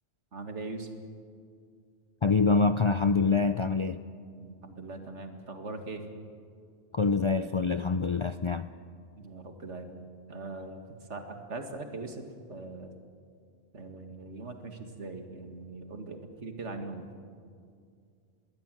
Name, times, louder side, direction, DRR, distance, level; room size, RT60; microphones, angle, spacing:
voice 1, 0.3-0.9 4.4-6.0 9.2-10.0 10.3-12.9 13.7-17.1, right 3 dB, 75° right, 2.3 m, -41 dB
voice 2, 2.2-4.0 6.9-8.7, left 4 dB, 45° left, 0.4 m, -25 dB
21.5 x 16.5 x 9.1 m
omnidirectional pair, 1.2 m